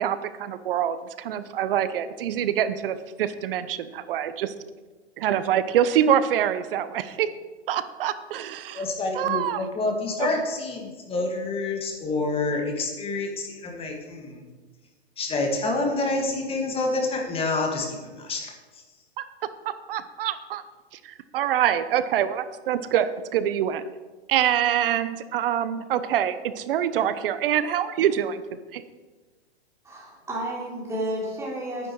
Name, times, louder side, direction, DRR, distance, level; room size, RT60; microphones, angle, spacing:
voice 1, 0.0-4.5 5.2-7.3 7.7-8.8 9.1-9.6 10.2-10.3 19.2-19.3 19.6-20.6 21.0-23.8 24.3-28.4 28.7-28.8, right 10 dB, 55° right, 13 dB, 0.9 m, -25 dB
voice 2, 8.7-14.4 15.2-18.8, left 3 dB, 15° left, 2 dB, 2.1 m, -28 dB
voice 3, 29.8-31.9, right 1 dB, 10° right, -4 dB, 3.5 m, -31 dB
10.5 x 9.9 x 4.8 m, 1.3 s
hypercardioid pair, 135°, 33 cm